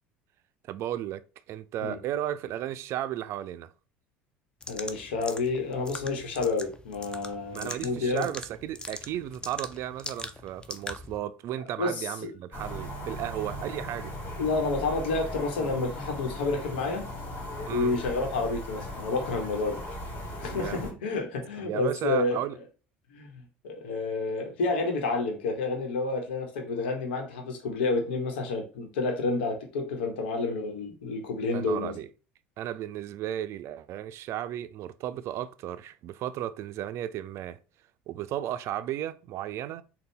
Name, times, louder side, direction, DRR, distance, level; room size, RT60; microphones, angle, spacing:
voice 1, 0.7-1.2 1.5-3.7 7.5-14.1 17.7-17.9 20.4-21.0 21.6-22.6 31.5-32.1 32.6-37.6 38.1-39.8, right 12 dB, 55° right, 0.4 m, -34 dB
sound 1, 4.6-11.2, left 2 dB, 15° left, 0.5 m, -42 dB
voice 2, 4.7-8.3 11.8-12.3 14.4-17.1 17.7-19.8 20.4-22.4 23.1-31.9, left 3 dB, 85° left, 1.1 m, -29 dB
sound 2, 12.5-20.9, left 1 dB, 30° left, 2.2 m, -38 dB
3.9 x 2.3 x 3.7 m
hypercardioid pair, 80°, 6 cm